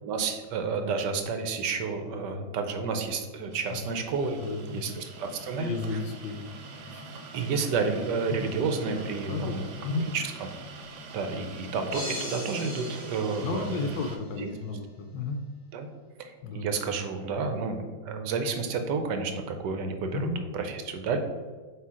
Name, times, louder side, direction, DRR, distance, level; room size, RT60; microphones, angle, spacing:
voice 1, 0.0-4.4 4.7-6.0 7.3-9.8 10.1-10.2 11.1-14.0 14.4-14.5 15.7-15.9 16.2-20.3 20.5-21.2, right 4 dB, 70° right, 6 dB, 1.2 m, -30 dB
sound 1, 3.5-14.2, right 3 dB, 90° right, 1.6 m, -44 dB
voice 2, 4.4-4.8 5.5-6.6 6.9-7.0 8.3-8.5 9.3-10.1 13.4-15.4 16.4-16.7 20.1-20.4, left 3 dB, 75° left, 4 dB, 1.3 m, -33 dB
sound 2, 11.9-14.2, left 1 dB, 15° left, 0.8 m, -39 dB
8.0 x 2.8 x 4.7 m, 1.4 s
omnidirectional pair, 2.1 m